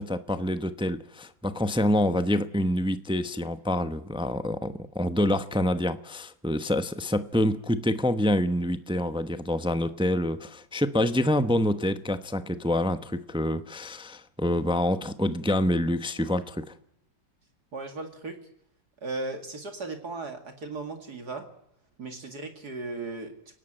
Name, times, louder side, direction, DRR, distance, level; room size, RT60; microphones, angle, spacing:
voice 1, 0.0-16.7, left 1 dB, 5° right, 10 dB, 0.4 m, -27 dB
voice 2, 17.7-18.4 19.0-21.5 22.0-23.6, right 3 dB, 60° right, 5 dB, 2.7 m, -36 dB
29.5 x 17.5 x 9.0 m, 0.77 s
omnidirectional pair, 2.0 m